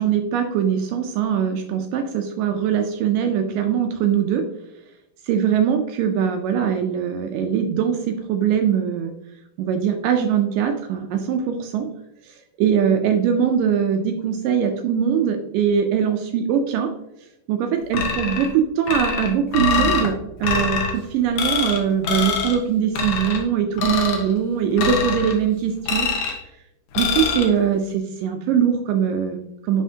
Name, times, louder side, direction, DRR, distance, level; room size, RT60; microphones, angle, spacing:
voice 1, 0.0-4.4 5.2-9.1 9.6-11.9 12.2-16.9 17.5-20.1 20.4-26.1 27.0-29.8, right 8 dB, 85° right, 5 dB, 1.9 m, -21 dB
sound 1, 17.9-18.5 18.9-20.1 20.4-20.9 21.4-21.8 22.0-22.6 22.9-23.4 23.8-24.2 24.8-25.3 25.9-26.4 26.9-27.4, left 5 dB, 65° left, 2.0 m, -24 dB
10.5 x 4.2 x 2.8 m, 0.87 s
omnidirectional pair, 4.5 m